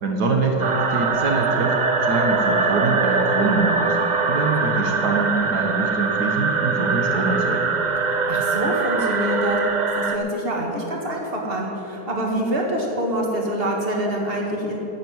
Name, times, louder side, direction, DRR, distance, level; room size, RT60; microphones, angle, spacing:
voice 1, 0.0-4.0 4.3-7.7, right 3 dB, 80° right, 1 dB, 1.9 m, -24 dB
sound 1, 0.6-10.2, right 4 dB, 55° right, 0.5 m, -22 dB
voice 2, 8.3-9.6 10.0-14.8, right 1 dB, 35° right, -1 dB, 2.2 m, -25 dB
10.5 x 8.6 x 9.5 m, 3.0 s
omnidirectional pair, 1.7 m